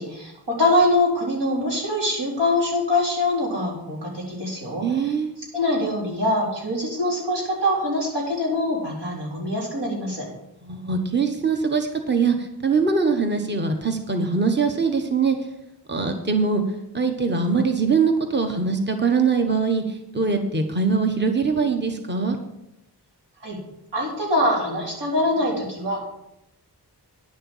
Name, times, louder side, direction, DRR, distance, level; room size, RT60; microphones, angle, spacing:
voice 1, 0.0-5.1 5.5-10.3 23.4-23.6 23.9-26.1, left 1 dB, 90° right, -3 dB, 4.0 m, -24 dB
voice 2, 4.7-5.3 10.7-12.4 12.6-15.4 15.9-16.6 16.9-19.8 20.1-22.4, right 5 dB, 25° right, 5 dB, 1.2 m, -22 dB
10.0 x 6.7 x 7.3 m, 0.87 s
wide cardioid pair, 65°, 41 cm